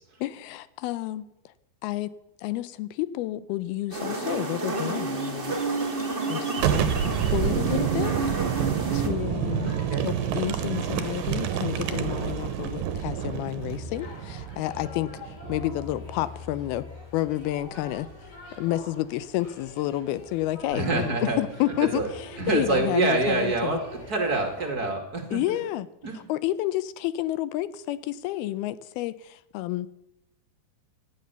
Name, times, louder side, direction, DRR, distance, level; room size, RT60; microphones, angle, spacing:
voice 1, 0.2-1.3 1.8-2.1 2.4-5.6 6.3-8.1 8.9-9.7 10.0-15.1 15.5-16.9 17.1-18.1 18.5-22.0 22.5-23.8 25.3-25.9 26.1-29.9, left 15 dB, 75° left, 16 dB, 2.5 m, -30 dB
sound 1, 3.9-9.1, right 3 dB, 90° right, 0.5 m, -30 dB
Boom, 6.6-16.1, right 9 dB, 70° right, 2.4 m, -28 dB
sound 2, 8.6-24.7, left 3 dB, 50° left, 9.3 m, -45 dB
voice 2, 20.7-21.4 21.9-22.1 22.4-25.6 26.0-26.2, right 3 dB, 30° right, 4 dB, 1.9 m, -26 dB
17.0 x 12.0 x 6.9 m, 0.87 s
omnidirectional pair, 4.8 m